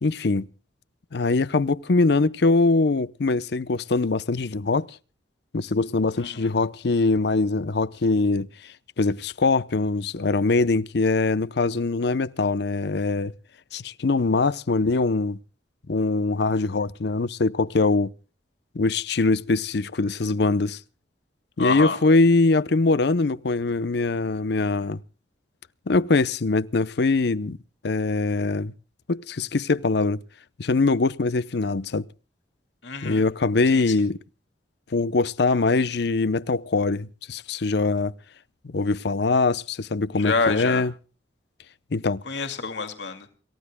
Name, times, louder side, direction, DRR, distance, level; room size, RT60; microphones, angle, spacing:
voice 1, 0.0-0.5 1.1-5.0 5.5-13.3 13.7-15.4 15.9-18.1 18.7-20.8 21.6-25.0 25.9-27.6 27.8-28.7 29.1-30.2 30.6-32.1 33.0-34.2 34.9-38.1 38.6-40.9 41.9-42.2, left 3 dB, 70° left, 0.7 m, -22 dB
voice 2, 6.2-6.5 21.6-22.0 32.8-33.2 33.7-33.9 40.2-40.8 42.3-43.3, left 4 dB, 90° left, 2.2 m, -27 dB
28.0 x 15.5 x 2.2 m
head